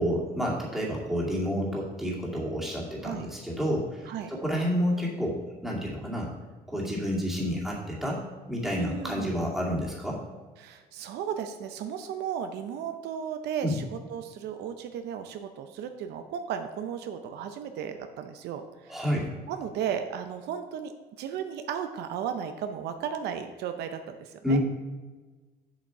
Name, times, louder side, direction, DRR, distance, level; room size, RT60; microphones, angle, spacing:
voice 1, 0.0-6.3 6.7-8.2 8.5-10.2 13.6-13.8 18.9-19.3 24.4-24.6, equal, ahead, -4 dB, 2.2 m, -29 dB
voice 2, 8.7-9.3 10.6-19.1 19.5-20.9 21.2-24.6, right 8 dB, 80° right, 7 dB, 0.6 m, -35 dB
7.2 x 6.2 x 4.6 m, 1.3 s
cardioid pair, 110°, 17 cm